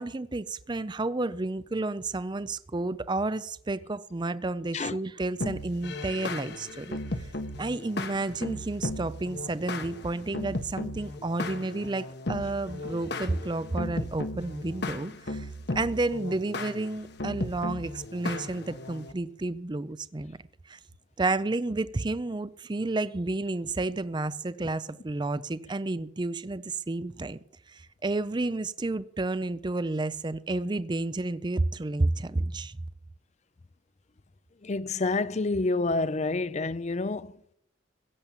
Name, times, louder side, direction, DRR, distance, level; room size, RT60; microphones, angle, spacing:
voice 1, 0.0-7.0 7.6-15.5 15.8-20.4 20.7-20.8 21.2-27.4 27.7-32.8, right 2 dB, 25° right, 0.5 m, -31 dB
sound 1, 5.4-19.1, left 2 dB, 60° left, 1.2 m, -36 dB
voice 2, 34.6-37.5, left 3 dB, 35° left, 0.5 m, -28 dB
16.5 x 7.1 x 8.9 m
head